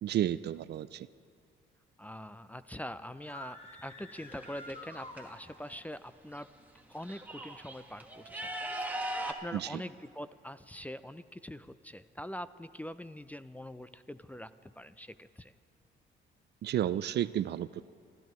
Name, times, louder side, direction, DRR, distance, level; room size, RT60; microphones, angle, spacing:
voice 1, 0.0-1.1 9.5-9.6 16.6-17.8, right 11 dB, 60° right, 16 dB, 0.4 m, -31 dB
voice 2, 2.0-6.5 6.9-8.5 9.3-15.5, equal, 10° left, 14 dB, 0.4 m, -44 dB
sound 1, 3.2-5.8, left 1 dB, 30° left, 1.7 m, -49 dB
sound 2, 4.1-5.2 6.4-6.5 6.8-9.3, right 1 dB, 10° right, 1.3 m, -39 dB
29.0 x 13.5 x 3.1 m, 2.2 s
cardioid pair, 90°, 20 cm